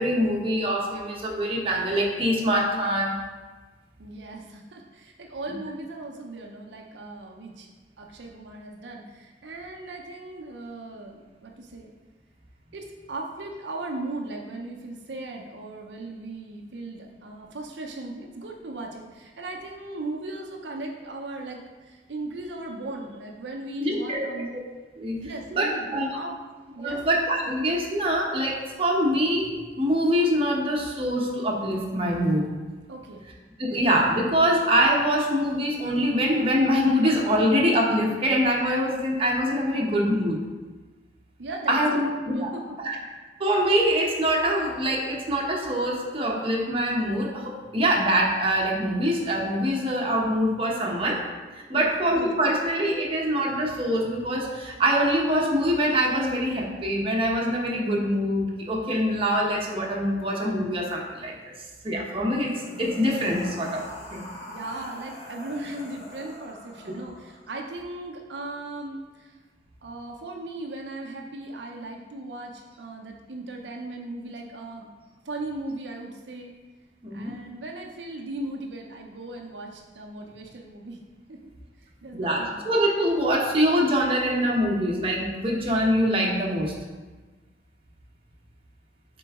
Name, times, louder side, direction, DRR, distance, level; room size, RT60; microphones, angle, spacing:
voice 1, 0.0-3.2 23.8-24.2 24.5-24.6 25.0-25.2 25.5-26.1 26.8-32.5 33.6-40.4 41.7-42.5 42.8-43.0 43.4-51.2 51.5-61.5 61.8-62.5 62.8-64.3 77.0-77.3 82.1-86.7, equal, 30° right, -1 dB, 0.9 m, -24 dB
voice 2, 4.0-7.7 8.0-11.9 12.7-24.5 25.2-26.4 26.7-27.0 32.9-33.3 41.4-42.9 51.7-52.1 64.5-69.4 69.8-74.9 75.2-76.6 77.1-81.0 81.3-81.5 81.8-82.6, right 2 dB, 80° right, 1 dB, 0.6 m, -37 dB
sound 1, 62.3-67.6, equal, 40° left, 1.1 m, -43 dB
6.9 x 3.9 x 3.6 m, 1.3 s
head